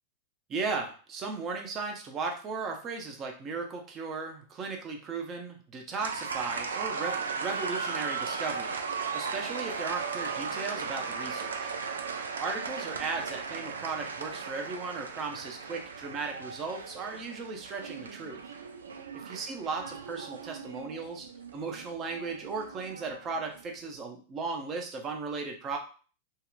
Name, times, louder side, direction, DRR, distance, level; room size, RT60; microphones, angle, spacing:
voice 1, 0.5-8.8 9.1-11.7 12.4-18.4 19.1-21.3 21.5-25.8, right 4 dB, 30° right, 2 dB, 0.7 m, -36 dB
sound 1, 6.0-23.7, right 5 dB, 85° right, 0.3 m, -37 dB
2.8 x 2.2 x 2.4 m, 0.39 s
hypercardioid pair, 100°, 0 cm